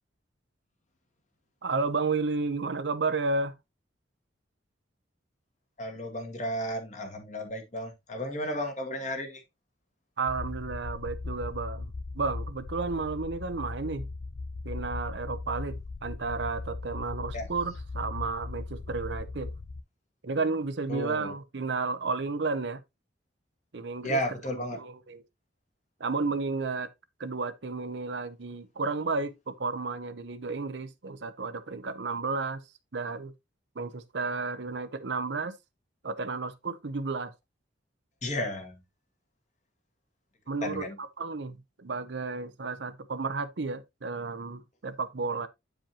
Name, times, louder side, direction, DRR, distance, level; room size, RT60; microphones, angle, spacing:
voice 1, 1.6-3.5 10.2-14.1 14.6-19.5 20.2-22.8 23.7-24.2 24.5-25.2 26.0-26.9 27.2-32.6 32.9-33.3 33.8-35.6 36.0-37.3 40.5-45.5, right 4 dB, 70° right, 0.7 m, -32 dB
voice 2, 5.8-9.4 17.3-17.5 20.9-21.3 24.0-24.8 38.2-38.8 40.6-40.9, equal, 40° left, 1.8 m, -33 dB
sound 1, 10.3-19.8, left 3 dB, 60° left, 0.5 m, -38 dB
8.9 x 5.0 x 2.9 m
head